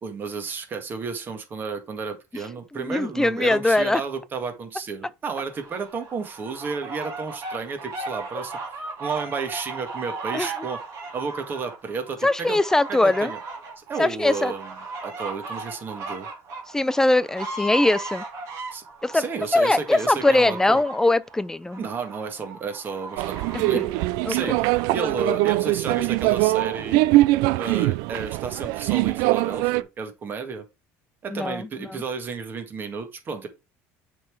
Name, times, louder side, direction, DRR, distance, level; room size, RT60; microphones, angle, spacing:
voice 1, 0.0-8.6 9.0-10.8 11.1-12.6 12.9-13.4 13.8-14.7 15.0-16.3 18.7-18.8 19.1-20.8 21.8-24.0 24.3-27.0 27.6-30.6 31.2-33.5, right 5 dB, 35° right, 1.7 m, -32 dB
voice 2, 2.9-4.0 10.3-10.5 12.2-13.3 14.0-14.5 16.7-18.2 19.0-19.2 19.5-21.8 23.5-23.8 24.3-24.6 31.3-32.0, left 2 dB, 10° left, 0.3 m, -21 dB
sound 1, 5.4-24.9, right 3 dB, 50° right, 3.0 m, -37 dB
sound 2, 23.2-29.8, right 19 dB, 80° right, 0.4 m, -22 dB
7.0 x 3.9 x 4.6 m
cardioid pair, 130°, 6 cm